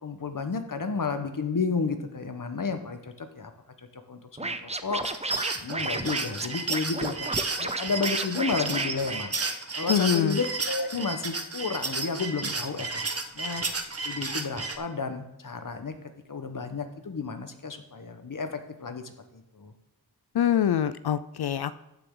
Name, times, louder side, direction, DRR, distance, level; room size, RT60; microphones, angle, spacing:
voice 1, 0.0-3.5 3.9-5.0 5.6-7.3 7.6-9.3 9.8-13.0 13.3-13.6 14.0-15.9 16.3-19.7, left 4 dB, 50° left, 8 dB, 1.2 m, -32 dB
Scratching (performance technique), 4.4-9.9, right 2 dB, 15° right, 0.6 m, -33 dB
sound 1, 5.0-14.8, right 3 dB, 35° right, 0.9 m, -32 dB
voice 2, 9.9-10.4 20.3-21.8, left 9 dB, 65° left, 15 dB, 0.5 m, -24 dB
14.0 x 7.0 x 3.8 m, 0.94 s
wide cardioid pair, 55°, 41 cm